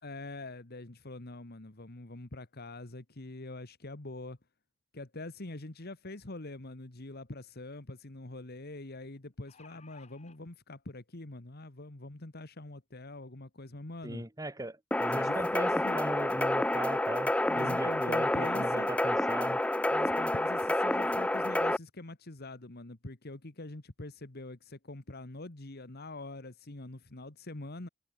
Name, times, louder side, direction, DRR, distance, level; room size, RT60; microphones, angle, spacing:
voice 1, 0.0-4.4 4.9-14.2 15.1-16.0 17.4-18.9 19.9-27.9, left 2 dB, 50° left, 1.6 m, -44 dB
sound 1, 9.2-10.4 11.3-11.4 11.8-11.9, left 5 dB, 35° left, 4.3 m, -58 dB
voice 2, 14.0-19.6, right 1 dB, 15° right, 1.4 m, -38 dB
sound 2, 14.9-21.8, left 1 dB, 5° left, 0.4 m, -29 dB
head